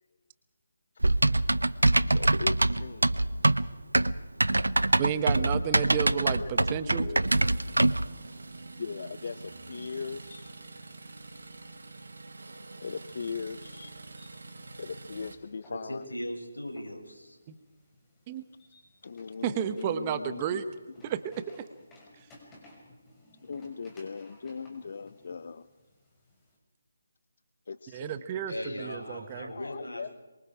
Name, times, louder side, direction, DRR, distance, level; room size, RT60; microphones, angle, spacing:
Typing, 1.0-8.1, right 2 dB, 80° right, 0.9 m, -24 dB
voice 1, 2.1-3.6 6.2-6.5 6.8-7.2 8.8-10.6 12.8-13.9 14.8-16.0 19.0-20.6 23.4-25.7 27.7-28.9 29.5-30.1, left 5 dB, 50° left, 14 dB, 0.8 m, -40 dB
voice 2, 5.0-7.1 17.5-17.6 18.3-18.4 19.4-20.6 21.0-21.2 27.9-29.5, right 9 dB, 25° right, 12 dB, 1.2 m, -31 dB
sound 1, 7.3-15.4, right 3 dB, 65° right, 4.1 m, -46 dB
sound 2, 14.1-26.6, left 1 dB, 10° left, 5.9 m, -58 dB
voice 3, 15.7-17.4 28.5-30.2, left 1 dB, 80° left, 1 dB, 7.9 m, -38 dB
26.5 x 24.0 x 4.9 m, 1.2 s
figure-of-eight pair, 155°, 0 cm